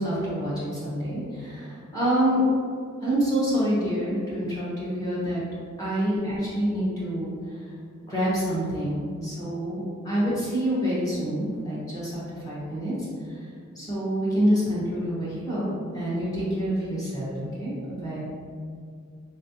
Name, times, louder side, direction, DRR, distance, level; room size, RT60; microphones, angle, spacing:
voice 1, 0.0-2.4 3.0-5.4 5.8-7.6 8.1-13.0 13.8-18.2, equal, 20° left, -9 dB, 1.1 m, -27 dB
3.9 x 3.1 x 2.7 m, 2.3 s
head